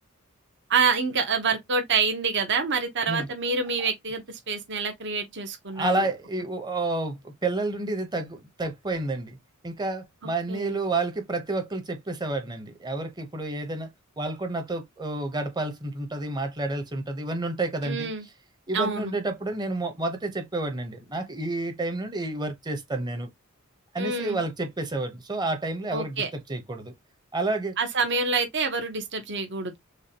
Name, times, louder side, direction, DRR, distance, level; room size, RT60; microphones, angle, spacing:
voice 1, 0.7-6.0 10.5-10.8 17.8-18.2 18.7-19.1 24.0-24.4 25.9-26.3 27.8-29.8, right 4 dB, 55° right, 1.0 m, -27 dB
voice 2, 5.7-9.4 9.6-13.9 14.2-18.1 18.7-23.3 23.9-26.2 26.5-26.9 27.3-27.7, right 2 dB, 20° right, 0.9 m, -30 dB
6.3 x 2.3 x 2.9 m
head